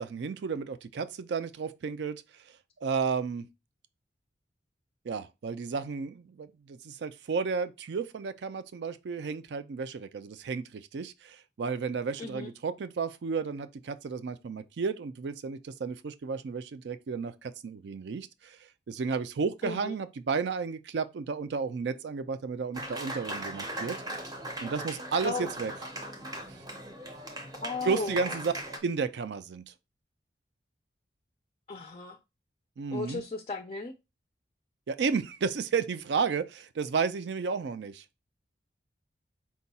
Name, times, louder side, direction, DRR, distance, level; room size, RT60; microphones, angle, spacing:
voice 1, 0.0-2.2 2.8-3.5 5.0-18.6 18.9-24.3 24.6-25.7 26.5-26.6 27.8-28.5 28.8-29.7 32.8-33.2 34.9-38.0, right 5 dB, 70° right, 0.4 m, -32 dB
voice 2, 12.2-12.5 19.6-20.0 25.2-25.6 27.5-28.4 31.7-32.2 32.9-34.0, left 4 dB, 30° left, 0.3 m, -36 dB
Applause, 22.7-28.8, right 1 dB, 20° right, 0.6 m, -39 dB
4.7 x 2.2 x 4.0 m
head